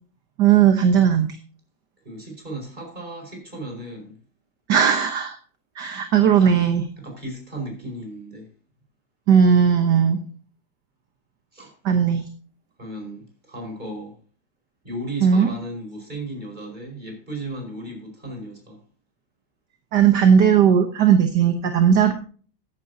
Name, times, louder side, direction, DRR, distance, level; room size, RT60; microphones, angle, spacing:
voice 1, 0.4-1.3 4.7-5.4 5.8-6.8 9.3-10.2 11.8-12.2 15.2-15.5 19.9-22.1, right 7 dB, 55° right, 6 dB, 1.6 m, -17 dB
voice 2, 2.0-4.2 6.4-6.7 7.0-8.5 11.5-11.7 12.8-14.2 14.8-18.8, right 1 dB, 20° right, 2 dB, 5.1 m, -35 dB
14.5 x 11.0 x 2.8 m, 0.40 s
omnidirectional pair, 2.4 m